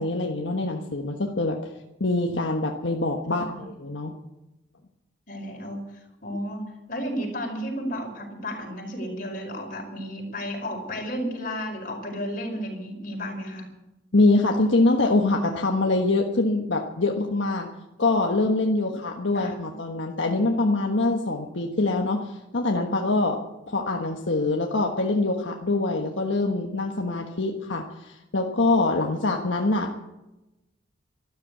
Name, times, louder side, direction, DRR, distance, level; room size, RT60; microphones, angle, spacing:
voice 1, 0.0-1.6 2.0-4.1 14.1-17.7 18.0-23.4 23.7-29.9, left 2 dB, 75° left, 1 dB, 1.4 m, -24 dB
voice 2, 3.3-3.7 5.3-5.8 6.2-6.6 6.9-13.7 19.3-19.8, equal, 45° left, 0 dB, 5.3 m, -33 dB
13.5 x 13.0 x 8.3 m, 0.98 s
head